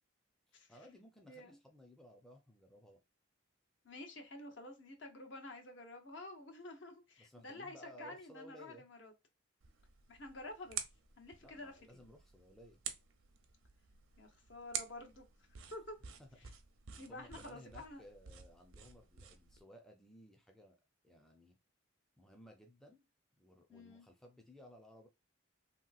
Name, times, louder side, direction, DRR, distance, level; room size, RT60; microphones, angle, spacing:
voice 1, 0.5-3.0 7.2-8.8 11.4-12.8 16.2-16.5 17.1-20.8 21.0-21.6 22.2-23.0 23.4-25.1, equal, ahead, 0.4 m, -58 dB
voice 2, 3.8-9.1 10.1-10.8 11.2-11.7 12.0-12.1 14.2-15.2 15.7-16.0 17.0-18.0 23.7-24.1, left 2 dB, 60° left, 0.8 m, -50 dB
sound 1, 9.6-19.6, right 8 dB, 80° right, 0.6 m, -49 dB
3.1 x 2.8 x 2.3 m
head